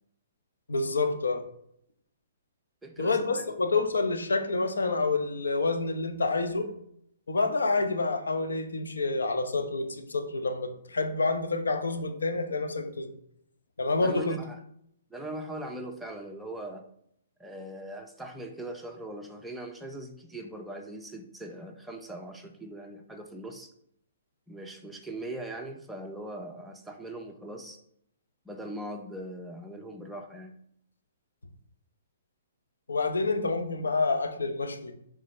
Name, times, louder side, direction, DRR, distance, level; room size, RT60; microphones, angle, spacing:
voice 1, 0.7-1.4 3.0-6.7 7.3-13.1 13.8-14.4 32.9-34.9, left 3 dB, 90° left, 5 dB, 1.0 m, -28 dB
voice 2, 2.8-3.6 14.0-14.6 15.1-16.9 17.4-23.7 24.5-27.8 28.4-30.5, right 1 dB, 5° right, 2 dB, 0.7 m, -40 dB
9.7 x 3.7 x 3.3 m, 0.72 s
hypercardioid pair, 140°, 0 cm